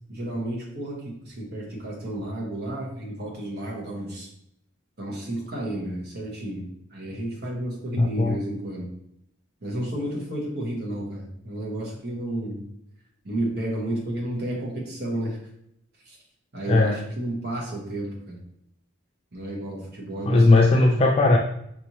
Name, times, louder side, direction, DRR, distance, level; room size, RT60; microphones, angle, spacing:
voice 1, 0.1-4.3 5.0-6.7 6.9-8.9 9.6-12.7 13.2-15.4 16.0-16.2 16.5-18.4 19.3-20.7, right 1 dB, 50° right, -2 dB, 1.2 m, -31 dB
voice 2, 8.0-8.4 16.7-17.0 20.3-21.4, left 2 dB, 30° left, 1 dB, 0.3 m, -18 dB
5.2 x 3.1 x 2.8 m, 0.75 s
head